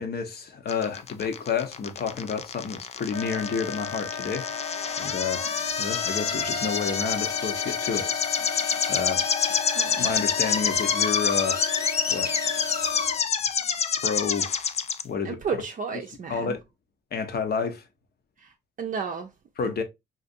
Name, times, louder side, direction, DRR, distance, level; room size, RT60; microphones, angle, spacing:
voice 1, 0.0-4.5 5.0-5.5 5.8-8.5 8.9-9.3 10.0-11.6 12.1-12.3 14.0-14.6 15.0-15.6 16.3-16.6 17.1-17.8 19.6-19.8, left 6 dB, 55° left, 0.8 m, -30 dB
sound 1, 0.7-15.0, left 7 dB, 35° left, 0.3 m, -27 dB
Wind instrument woodwind instrument, 3.1-13.2, left 4 dB, 85° left, 1.1 m, -35 dB
sound 2, 5.1-13.9, left 2 dB, 20° left, 0.7 m, -41 dB
voice 2, 15.2-16.6 18.8-19.3, right 6 dB, 45° right, 0.5 m, -32 dB
3.9 x 2.5 x 2.6 m
cardioid pair, 90°, 20 cm